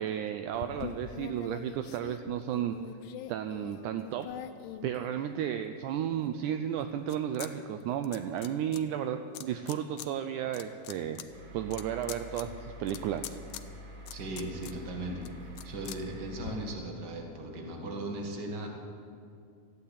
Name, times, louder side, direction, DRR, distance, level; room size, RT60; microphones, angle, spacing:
voice 1, 0.0-2.8 3.3-4.3 4.8-11.2 11.5-13.4, right 10 dB, 85° right, 8 dB, 1.7 m, -33 dB
sound 1, 0.5-5.6 6.1-7.5 7.8-8.8 9.3-10.1 10.4-16.5, left 11 dB, 80° left, 2.1 m, -45 dB
sound 2, 11.3-16.7, equal, 70° right, 3.6 m, -47 dB
voice 2, 14.1-18.7, right 1 dB, 40° right, 1 dB, 1.7 m, -38 dB
14.5 x 9.9 x 8.6 m, 2.4 s
omnidirectional pair, 4.1 m